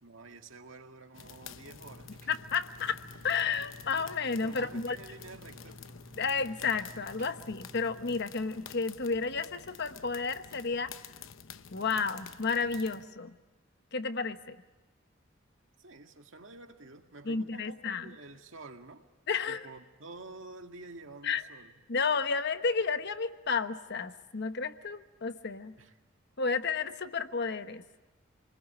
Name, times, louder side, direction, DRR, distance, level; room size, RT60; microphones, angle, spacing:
voice 1, 0.0-2.1 4.4-5.8 15.8-19.0 19.5-21.7 25.8-25.9, right 2 dB, 70° right, 4 dB, 2.0 m, -49 dB
sound 1, 1.1-13.1, left 7 dB, 75° left, 0.9 m, -50 dB
sound 2, 1.8-8.2, equal, 40° right, 2.3 m, -53 dB
voice 2, 2.3-5.0 6.2-10.9 11.7-13.3 13.9-14.6 17.2-18.0 19.3-19.7 21.2-21.4 21.9-25.8 26.4-27.8, left 5 dB, 55° left, 10 dB, 1.1 m, -32 dB
28.0 x 20.5 x 8.4 m, 1.2 s
head